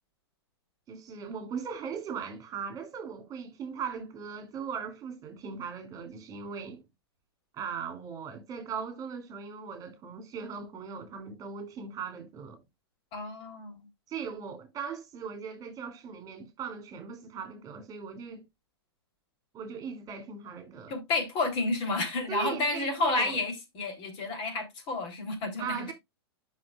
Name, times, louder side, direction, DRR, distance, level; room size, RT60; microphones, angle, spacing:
voice 1, 0.9-6.8 7.5-12.6 14.1-18.4 19.5-20.9 22.3-23.4 25.6-25.9, right 6 dB, 25° right, 2.7 m, -39 dB
voice 2, 13.1-13.9 20.9-25.9, left 3 dB, 40° left, 3.3 m, -31 dB
12.5 x 5.9 x 2.3 m
hypercardioid pair, 105°, 13 cm